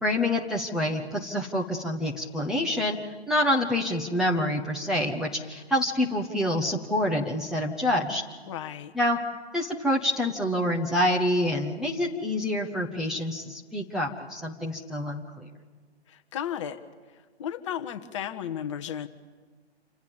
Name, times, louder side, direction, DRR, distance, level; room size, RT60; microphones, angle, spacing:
voice 1, 0.0-3.0 3.3-8.2 8.9-9.2 9.5-15.5, left 1 dB, ahead, -2 dB, 1.0 m, -27 dB
voice 2, 8.5-8.9 16.1-16.8 17.1-19.1, left 9 dB, 30° left, 8 dB, 1.3 m, -34 dB
28.0 x 26.5 x 7.2 m, 1.5 s
figure-of-eight pair, 135°, 33 cm